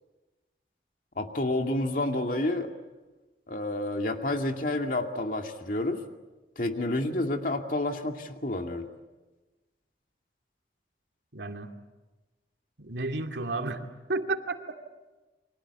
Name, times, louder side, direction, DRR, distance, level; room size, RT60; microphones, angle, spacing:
voice 1, 1.2-2.7 3.5-6.0 6.6-8.9, left 2 dB, 50° left, 4 dB, 2.4 m, -29 dB
voice 2, 11.3-11.7 12.8-14.6, right 2 dB, 85° right, 4 dB, 2.4 m, -32 dB
29.5 x 24.5 x 8.2 m, 1.2 s
head